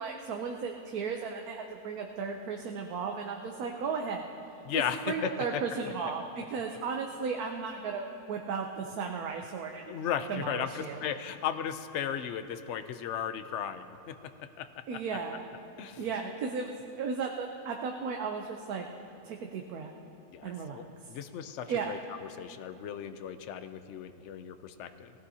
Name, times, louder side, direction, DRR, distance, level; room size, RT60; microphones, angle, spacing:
voice 1, 0.0-4.3 4.7-9.9 10.3-11.0 14.9-15.5 16.0-18.8 19.2-19.9 20.4-20.9 21.7-21.9, right 5 dB, 85° right, 2 dB, 1.3 m, -35 dB
voice 2, 4.6-5.6 9.9-14.1 14.6-14.7 15.8-16.0 20.3-22.0 22.4-25.1, left 9 dB, 60° left, 9 dB, 0.9 m, -35 dB
20.5 x 16.0 x 2.8 m, 2.7 s
omnidirectional pair, 1.5 m